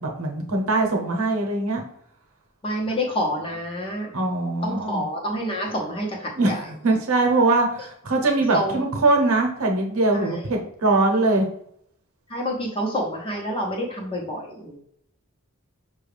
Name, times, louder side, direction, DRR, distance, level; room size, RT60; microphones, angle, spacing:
voice 1, 0.0-1.8 2.9-3.0 4.1-5.0 6.4-6.5 6.8-11.5, right 2 dB, 80° right, 2 dB, 0.8 m, -22 dB
voice 2, 2.6-4.1 4.6-6.6 8.3-8.8 10.1-10.6 12.3-14.8, equal, 25° left, -1 dB, 0.7 m, -28 dB
5.7 x 2.3 x 3.3 m, 0.70 s
head